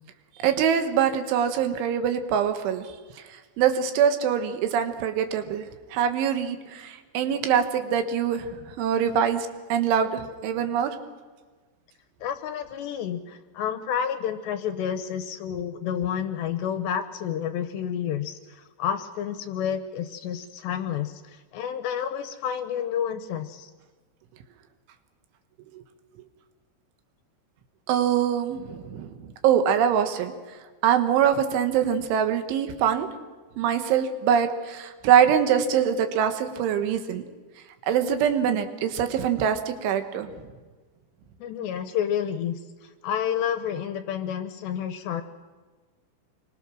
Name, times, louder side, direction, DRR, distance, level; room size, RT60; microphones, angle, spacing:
voice 1, 0.4-2.9 3.3-11.0 25.7-25.8 27.9-30.3 30.8-33.1 33.6-37.2 37.9-40.3, right 8 dB, 75° right, 7 dB, 3.6 m, -24 dB
voice 2, 12.2-23.7 41.4-45.2, left 9 dB, 75° left, 9 dB, 2.7 m, -30 dB
27.0 x 23.5 x 6.2 m, 1.4 s
omnidirectional pair, 5.6 m